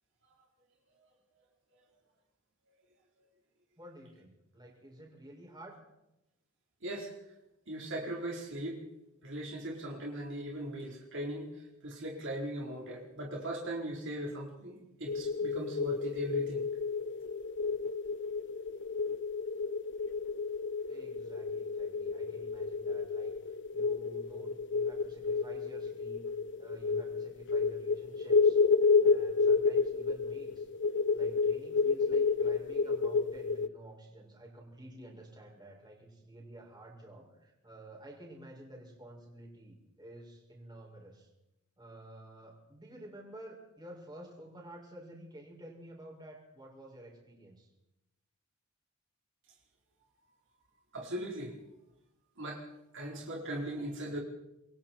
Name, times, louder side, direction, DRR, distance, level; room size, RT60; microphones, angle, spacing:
voice 1, 3.8-5.8 20.9-26.2 26.6-28.6 29.0-41.3 41.8-47.7, right 1 dB, 20° right, -1 dB, 6.4 m, -51 dB
voice 2, 6.8-7.1 7.7-8.8 9.2-16.6 50.9-51.6 52.4-52.7 52.9-54.2, right 1 dB, 60° right, -2 dB, 4.4 m, -39 dB
sound 1, 15.1-33.7, left 4 dB, 55° left, 0.8 m, -30 dB
27.5 x 22.5 x 4.6 m, 0.91 s
head